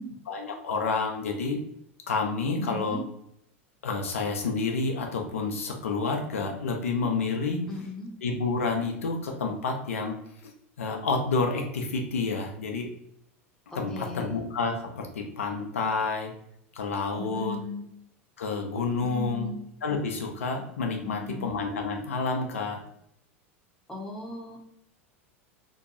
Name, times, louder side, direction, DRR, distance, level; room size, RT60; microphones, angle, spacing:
voice 1, 0.3-1.6 2.1-3.0 3.8-7.6 8.2-10.2 10.8-12.9 13.7-16.3 16.7-17.6 18.4-19.5 19.8-22.8, left 4 dB, 75° left, 2 dB, 0.4 m, -29 dB
voice 2, 2.6-3.0 7.7-8.1 13.7-14.4 17.2-17.8 19.0-19.5 21.0-21.5 23.9-24.6, left 1 dB, 5° left, -2 dB, 0.7 m, -37 dB
2.6 x 2.2 x 2.6 m, 0.73 s
figure-of-eight pair, 85°, 7 cm